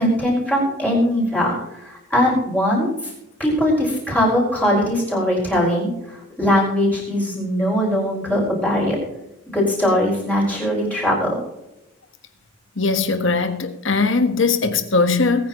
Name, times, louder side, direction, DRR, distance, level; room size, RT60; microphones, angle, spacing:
voice 1, 0.0-3.1 3.4-9.0 9.5-11.4, equal, 5° left, 5.9 m, -20 dB
voice 2, 12.8-15.5, left 4 dB, 65° left, 1.5 m, -20 dB
22.0 x 9.6 x 3.2 m
head